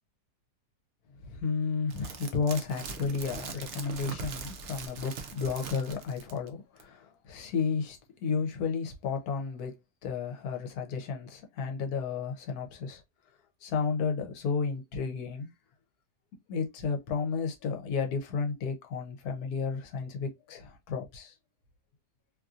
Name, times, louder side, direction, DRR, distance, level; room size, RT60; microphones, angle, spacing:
voice 1, 1.2-9.8 10.0-13.0 13.6-15.5 16.5-21.3, left 5 dB, 70° left, 1.2 m, -32 dB
sound 1, 1.9-6.5 6.8-6.9, right 5 dB, 90° right, 0.5 m, -41 dB
2.9 x 2.6 x 2.4 m
omnidirectional pair, 1.7 m